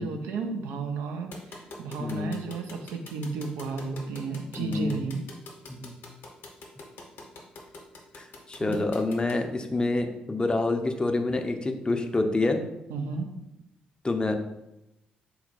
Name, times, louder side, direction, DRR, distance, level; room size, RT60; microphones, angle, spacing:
voice 1, 0.0-5.2 8.6-8.8 12.9-13.4, right 4 dB, 65° right, 4 dB, 0.4 m, -33 dB
sound 1, 1.3-9.3, left 3 dB, 60° left, 0.8 m, -44 dB
voice 2, 2.0-2.3 4.6-5.0 5.7-5.9 8.1-12.6 14.0-14.3, left 2 dB, 20° left, 5 dB, 0.5 m, -27 dB
3.9 x 2.2 x 4.2 m, 0.88 s
figure-of-eight pair, 40°, 4 cm